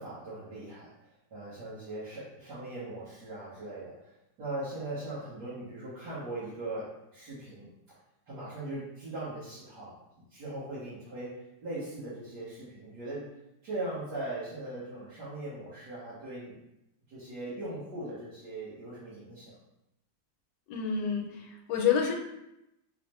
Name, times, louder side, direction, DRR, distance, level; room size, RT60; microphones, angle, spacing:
voice 1, 0.0-4.1 4.4-7.7 8.3-9.9 10.3-13.3 13.6-16.6 17.1-19.6, right 2 dB, 70° right, -12 dB, 1.8 m, -40 dB
voice 2, 20.7-22.1, left 7 dB, 75° left, 2 dB, 1.2 m, -28 dB
4.8 x 2.1 x 3.0 m, 0.87 s
omnidirectional pair, 1.9 m